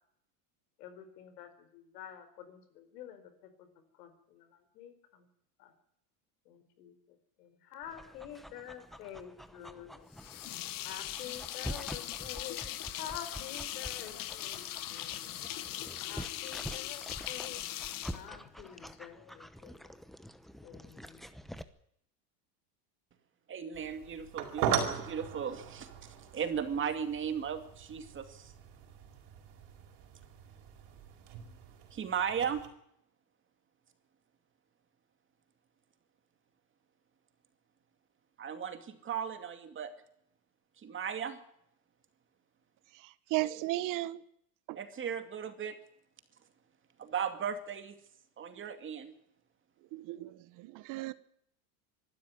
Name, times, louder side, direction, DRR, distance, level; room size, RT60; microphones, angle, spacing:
voice 1, 0.8-3.7 3.9-5.3 5.6-5.7 6.4-10.1 10.8-15.3 16.0-17.6 18.1-20.0 20.6-21.4, left 10 dB, 85° left, 4.6 m, -48 dB
Dog, 7.8-21.6, equal, ahead, 0.9 m, -47 dB
sound 1, 10.1-18.9, left 13 dB, 45° left, 1.7 m, -40 dB
voice 2, 23.5-28.5 31.9-32.6 38.4-39.9 40.8-41.4 44.7-45.8 47.0-48.0 48.4-49.1, right 7 dB, 25° right, 2.3 m, -36 dB
sound 2, 23.7-32.7, right 8 dB, 60° right, 4.6 m, -39 dB
voice 3, 43.3-44.2 44.7-44.8 49.9-51.1, right 17 dB, 45° right, 0.9 m, -35 dB
24.5 x 12.5 x 9.7 m
supercardioid pair, 140°, 46 cm